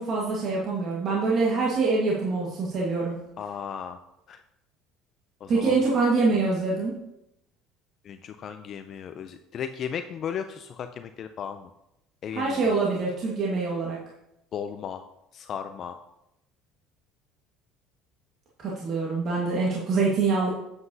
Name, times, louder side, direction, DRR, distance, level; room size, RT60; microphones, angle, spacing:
voice 1, 0.0-3.2 5.5-6.9 12.3-14.0 18.6-20.5, right 3 dB, 45° right, -4 dB, 1.5 m, -25 dB
voice 2, 3.4-4.0 4.3-4.4 5.4-5.7 8.0-11.7 12.2-12.7 14.5-15.0 15.3-16.0, left 8 dB, 45° left, 8 dB, 0.4 m, -35 dB
7.9 x 7.7 x 2.7 m, 0.85 s
cardioid pair, 115°, 0 cm